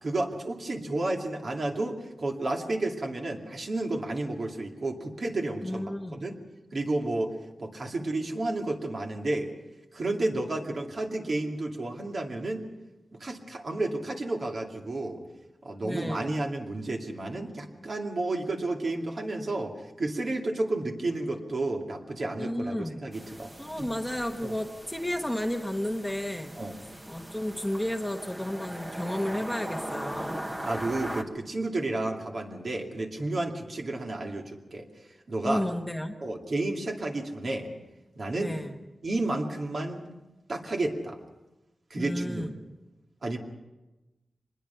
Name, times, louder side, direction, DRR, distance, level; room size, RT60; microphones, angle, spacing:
voice 1, 0.0-6.4 6.7-7.3 7.6-9.5 9.9-12.6 13.2-15.2 15.6-19.7 20.0-23.5 23.8-23.9 24.4-24.6 26.6-26.7 30.7-34.9 35.3-35.7 36.2-37.7 38.2-38.6 39.0-40.1 40.5-41.2 41.9-42.5 43.2-43.4, right 2 dB, 50° right, 1 dB, 2.5 m, -31 dB
voice 2, 5.6-6.3 15.8-16.3 22.4-23.0 23.6-26.6 27.1-30.4 35.4-36.2 38.4-38.7 41.9-42.5, left 1 dB, 5° left, 4 dB, 1.2 m, -32 dB
sound 1, 23.1-31.2, right 1 dB, 15° right, 1.3 m, -40 dB
25.0 x 21.0 x 5.7 m, 1.1 s
wide cardioid pair, 105°, 0 cm